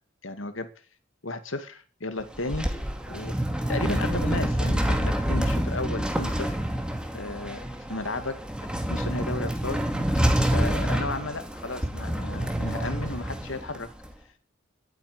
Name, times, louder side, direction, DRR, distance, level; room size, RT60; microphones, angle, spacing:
voice 1, 0.2-0.7 1.2-2.7 3.1-3.3 3.7-6.5 7.1-7.6 7.9-8.4 8.9-9.8 10.2-10.3 10.5-13.9, left 2 dB, 80° left, 9 dB, 2.3 m, -33 dB
sound 1, 2.2-14.1, equal, 5° right, 2.2 m, -27 dB
12.5 x 8.9 x 9.7 m, 0.40 s
head